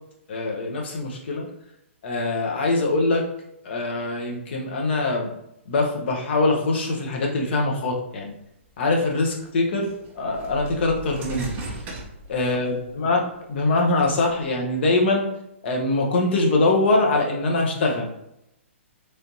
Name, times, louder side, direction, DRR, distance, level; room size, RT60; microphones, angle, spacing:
voice 1, 0.3-1.5 2.0-3.3 3.6-5.3 5.7-8.3 8.8-9.9 10.2-11.8 12.3-13.2 13.5-15.3 15.6-18.1, left 2 dB, 55° left, 0 dB, 0.9 m, -23 dB
sound 1, 8.8-8.9 9.8-12.9 13.4-14.4, right 3 dB, 20° right, 0.7 m, -36 dB
3.3 x 2.7 x 2.9 m, 0.81 s
hypercardioid pair, 140°, 7 cm